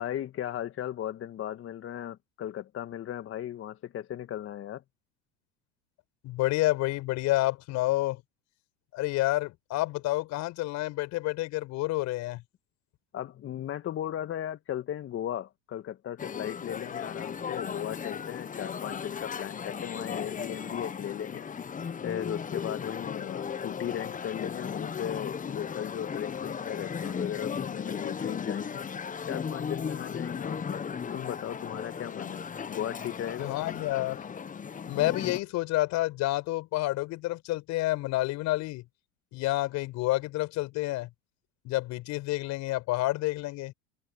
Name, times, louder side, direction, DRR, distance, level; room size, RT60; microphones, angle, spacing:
voice 1, 0.0-4.8 13.1-21.5 22.0-28.8 29.3-30.8 31.1-32.4 32.7-33.5, left 11 dB, 40° left, 1.9 m, -36 dB
voice 2, 6.2-8.2 8.9-12.4 33.4-34.2 34.9-38.8 39.3-41.1 41.6-43.7, left 18 dB, 55° left, 6.4 m, -29 dB
sound 1, 16.2-35.4, left 6 dB, 25° left, 1.4 m, -36 dB
hypercardioid pair, 80°, 33 cm